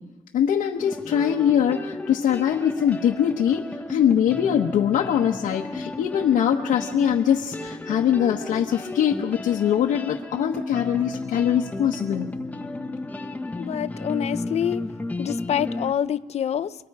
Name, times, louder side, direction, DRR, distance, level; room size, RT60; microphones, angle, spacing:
voice 1, 0.3-12.3, left 9 dB, 85° left, 1.2 m, -22 dB
sound 1, 0.8-15.9, left 2 dB, 10° left, 1.1 m, -33 dB
voice 2, 13.6-14.8 15.2-16.8, left 9 dB, 55° left, 0.7 m, -26 dB
28.5 x 22.5 x 4.9 m
cardioid pair, 120°, 13 cm